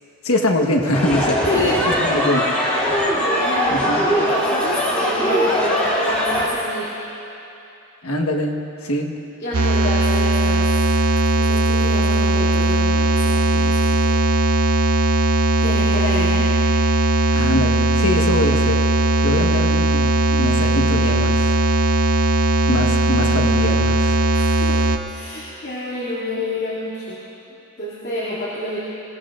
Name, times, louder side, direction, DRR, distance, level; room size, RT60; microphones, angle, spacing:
voice 1, 0.2-1.4 2.0-2.5 3.7-4.1 8.0-8.5 8.8-9.1 17.3-18.8 19.2-21.6 22.7-24.2, left 1 dB, 75° left, 1 dB, 1.3 m, -23 dB
sound 1, 0.9-6.5, equal, 5° left, 2.8 m, -20 dB
voice 2, 1.4-1.9 3.2-6.9 9.4-10.8 11.4-14.2 15.6-16.5 24.3-27.2 27.8-28.8, left 1 dB, 45° left, -9 dB, 2.6 m, -28 dB
sound 2, 9.5-25.0, right 2 dB, 75° right, 0.7 m, -18 dB
24.0 x 17.5 x 2.5 m, 2.8 s
head